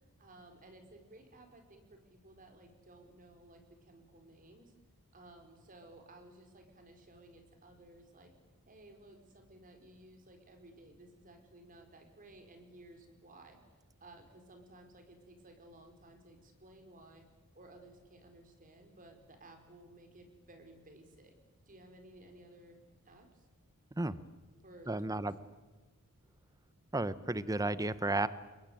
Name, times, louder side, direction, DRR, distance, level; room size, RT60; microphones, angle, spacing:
voice 1, 0.2-4.7 5.1-8.3 8.7-13.6 14.0-17.3 17.5-21.4 21.7-22.8 23.0-23.5 24.6-25.3, right 1 dB, 40° right, 5 dB, 4.6 m, -57 dB
voice 2, 24.9-25.3 26.9-28.3, right 2 dB, 15° right, 15 dB, 0.9 m, -33 dB
29.0 x 22.0 x 9.3 m, 1.2 s
head